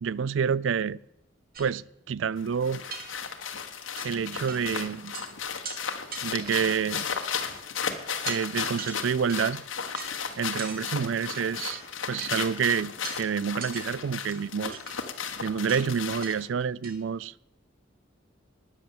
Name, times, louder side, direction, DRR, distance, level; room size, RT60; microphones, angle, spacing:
voice 1, 0.0-1.0 1.6-2.8 4.0-5.1 6.2-7.1 8.3-9.6 10.4-11.8 12.1-14.8 15.4-17.3, right 7 dB, 70° right, 0.4 m, -28 dB
sound 1, 1.5-1.7 2.3-2.4 2.9-3.5 4.0-4.1 4.5-4.7 4.9-5.3 5.6-5.8 6.1-6.9 7.5-7.8 8.3-8.4 8.8-9.5 10.0-10.1 10.6-10.8 11.3-11.8 12.2-12.3 13.0-13.2 13.6-13.8 14.3-15.0 15.7-15.8 16.2-16.3 16.6-17.0, right 4 dB, 50° right, 2.3 m, -40 dB
sound 2, 2.4-16.5, left 6 dB, 85° left, 1.5 m, -35 dB
13.0 x 9.9 x 7.6 m
head